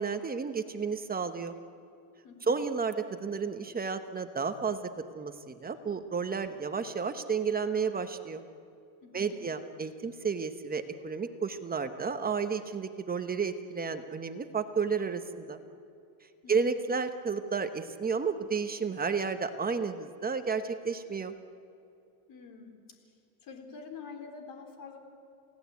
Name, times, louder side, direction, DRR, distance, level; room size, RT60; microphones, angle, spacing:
voice 1, 0.0-1.6 2.5-4.9 5.1-8.4 9.1-15.6 16.5-21.3, right 5 dB, 20° right, 8 dB, 1.1 m, -32 dB
voice 2, 2.2-2.6 9.0-9.4 16.4-16.8 22.3-22.7 23.4-25.0, left 5 dB, 40° left, 4 dB, 4.0 m, -46 dB
28.5 x 18.0 x 8.4 m, 2.6 s
cardioid pair, 135°, 49 cm